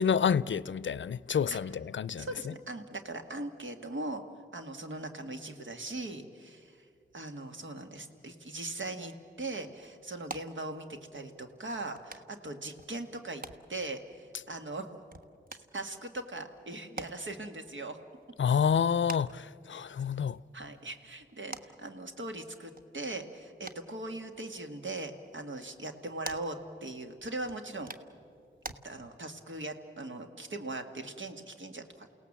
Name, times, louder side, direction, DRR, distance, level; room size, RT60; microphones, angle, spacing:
voice 1, 0.0-2.5 18.4-20.4, left 7 dB, 70° left, 0.5 m, -28 dB
voice 2, 2.2-4.2 4.5-6.9 7.1-10.9 11.1-13.4 13.7-14.9 15.5-18.0 20.5-27.9 28.8-32.1, right 2 dB, 75° right, 1.9 m, -40 dB
sound 1, 8.9-28.8, right 3 dB, 45° right, 1.3 m, -50 dB
29.0 x 17.5 x 7.4 m
cardioid pair, 45°, 20 cm